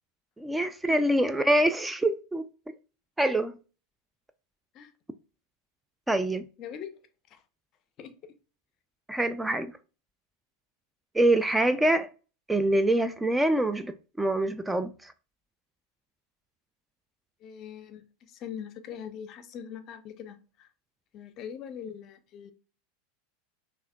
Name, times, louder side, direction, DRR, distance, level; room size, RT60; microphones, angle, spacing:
voice 1, 0.4-2.5 3.2-3.5 6.1-6.4 9.1-9.7 11.1-12.1 12.5-15.1, right 1 dB, 10° right, 0.3 m, -25 dB
voice 2, 6.6-6.9 7.3-7.4 8.0-8.1 17.4-20.7 21.1-22.5, left 8 dB, 45° left, 0.6 m, -42 dB
5.6 x 2.5 x 2.2 m
hypercardioid pair, 90°, 0 cm